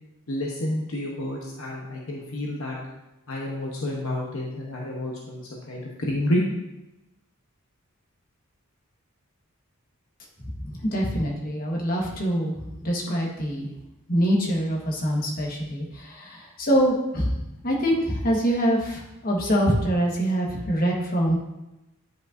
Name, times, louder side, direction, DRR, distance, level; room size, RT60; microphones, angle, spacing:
voice 1, 0.3-2.8 3.3-6.4, left 1 dB, 65° left, -2 dB, 0.9 m, -29 dB
voice 2, 10.7-12.5 12.8-13.7 14.1-17.3 17.6-21.4, equal, 40° left, -1 dB, 1.3 m, -24 dB
9.9 x 5.3 x 2.6 m, 0.94 s
head